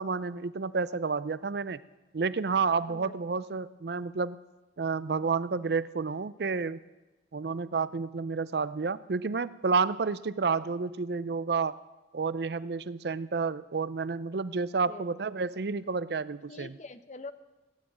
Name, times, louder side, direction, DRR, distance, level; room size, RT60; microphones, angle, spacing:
voice 1, 0.0-1.8 2.1-4.4 4.8-6.8 7.3-11.8 12.1-16.7, right 4 dB, 60° right, 17 dB, 0.5 m, -30 dB
voice 2, 16.5-17.3, left 3 dB, 40° left, 12 dB, 0.8 m, -44 dB
17.0 x 9.5 x 8.8 m, 1.1 s
head